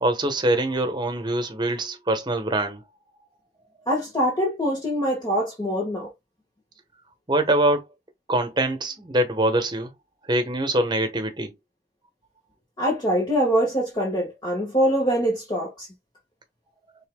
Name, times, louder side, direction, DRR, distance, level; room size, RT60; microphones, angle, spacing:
voice 1, 0.0-2.8 7.3-7.8 8.3-9.9 10.3-11.5, right 1 dB, 25° right, 1.2 m, -23 dB
voice 2, 3.9-6.1 12.8-15.9, equal, 25° left, 1.6 m, -24 dB
5.7 x 3.9 x 2.3 m
head